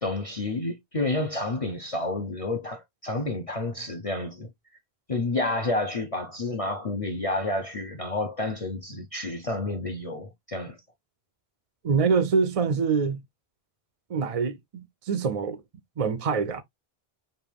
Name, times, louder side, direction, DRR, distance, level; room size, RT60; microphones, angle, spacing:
voice 1, 0.0-4.5 5.1-10.8, left 2 dB, 35° left, 0.8 m, -30 dB
voice 2, 11.8-13.2 14.1-15.6 16.0-16.6, right 5 dB, 50° right, 0.5 m, -25 dB
5.3 x 2.6 x 3.4 m
omnidirectional pair, 1.1 m